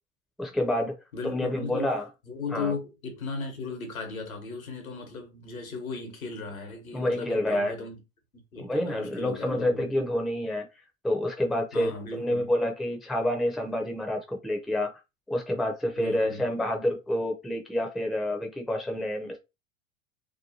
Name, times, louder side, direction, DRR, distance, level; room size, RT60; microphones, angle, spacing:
voice 1, 0.4-0.9 1.2-2.1 2.5-2.7 6.9-7.7 8.6-10.7 11.0-14.9 15.3-19.4, left 1 dB, ahead, 0.4 m, -28 dB
voice 2, 1.1-1.9 2.2-8.0 8.5-9.9 11.7-12.5 16.0-16.4, left 4 dB, 85° left, 1.0 m, -36 dB
2.8 x 2.2 x 2.7 m
figure-of-eight pair, 85°, 41 cm